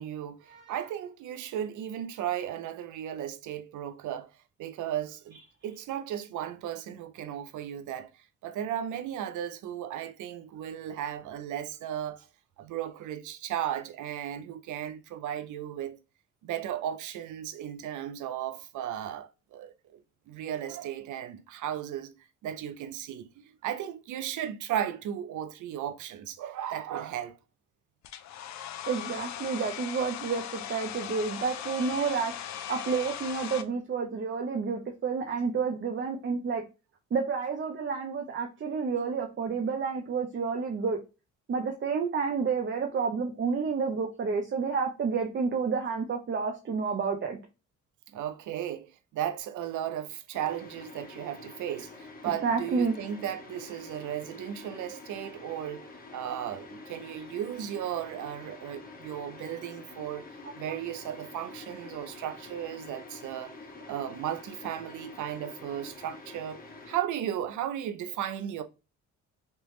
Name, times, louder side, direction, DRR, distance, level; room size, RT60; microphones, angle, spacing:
voice 1, 0.0-4.3 4.6-12.3 12.6-16.0 16.4-20.0 20.3-22.1 22.4-27.4 48.1-60.3 60.5-63.5 63.9-66.6 66.9-68.6, right 10 dB, 80° right, 0.6 m, -35 dB
Domestic sounds home sounds, 28.0-33.6, left 10 dB, 65° left, 0.5 m, -39 dB
voice 2, 28.9-32.3 32.7-36.6 37.1-41.0 41.5-47.4 52.4-52.9, right 5 dB, 40° right, 0.7 m, -30 dB
sound 1, 50.3-67.0, left 3 dB, 30° left, 1.1 m, -47 dB
3.3 x 3.0 x 3.1 m
cardioid pair, 90°, 30 cm